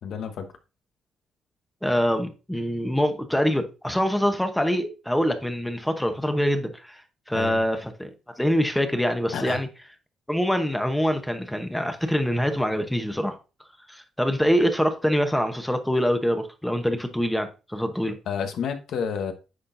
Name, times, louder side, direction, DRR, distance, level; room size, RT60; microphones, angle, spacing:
voice 1, 0.0-0.5 7.3-7.6 9.3-9.6 18.3-19.3, left 7 dB, 70° left, 1.1 m, -30 dB
voice 2, 1.8-7.0 7.3-9.7 10.3-13.4 13.9-18.2, equal, 5° left, 0.9 m, -25 dB
9.6 x 4.3 x 2.6 m
cardioid pair, 90°, 0 cm